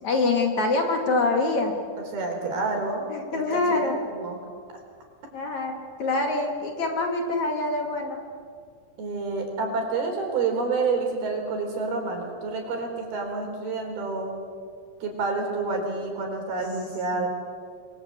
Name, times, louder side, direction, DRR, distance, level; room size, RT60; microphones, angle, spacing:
voice 1, 0.0-1.8 3.1-4.0 5.3-8.2 17.1-17.3, left 3 dB, 50° left, 2 dB, 3.4 m, -25 dB
voice 2, 2.0-3.1 3.3-4.4 9.0-14.3 15.0-17.3, right 3 dB, 70° right, 2 dB, 6.1 m, -29 dB
28.5 x 22.5 x 8.3 m, 2.1 s
omnidirectional pair, 4.6 m